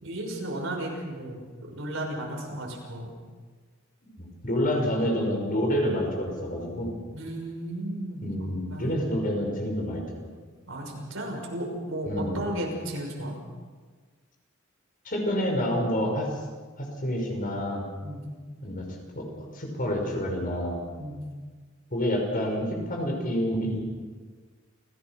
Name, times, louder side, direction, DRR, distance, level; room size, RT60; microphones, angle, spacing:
voice 1, 0.0-3.1 7.1-8.3 8.7-9.0 10.7-13.4 18.0-18.3 21.0-21.3, right 1 dB, 75° right, 0 dB, 6.1 m, -34 dB
voice 2, 4.2-7.0 8.2-10.0 12.1-12.4 15.0-16.3 16.8-17.9 18.6-18.9 19.1-20.8 21.9-23.8, equal, 45° left, 1 dB, 5.8 m, -28 dB
29.0 x 17.5 x 6.1 m, 1.5 s
head